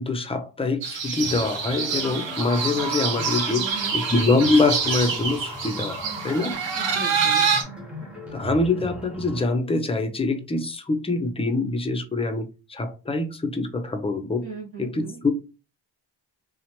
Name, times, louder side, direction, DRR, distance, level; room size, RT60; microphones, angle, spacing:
voice 1, 0.0-6.5 8.3-14.5 14.8-15.3, left 3 dB, 15° left, 0.4 m, -24 dB
sound 1, 0.8-7.6, right 6 dB, 75° right, 0.7 m, -26 dB
sound 2, 1.2-9.5, left 1 dB, 5° right, 0.8 m, -37 dB
voice 2, 3.5-4.0 6.7-7.5 14.4-15.2, right 4 dB, 30° right, 0.9 m, -37 dB
2.8 x 2.1 x 2.8 m
cardioid pair, 80°, 45 cm